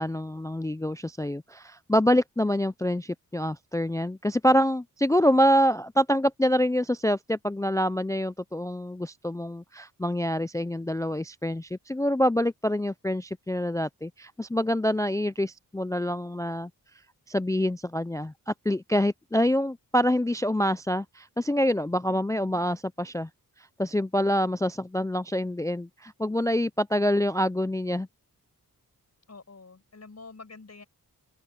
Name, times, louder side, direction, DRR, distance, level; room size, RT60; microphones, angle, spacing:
voice 1, 0.0-16.7 17.3-23.3 23.8-28.1, equal, 10° left, 0.3 m, -26 dB
voice 2, 29.3-30.8, left 3 dB, 45° left, 5.3 m, -47 dB
open air
wide cardioid pair, 110°, 37 cm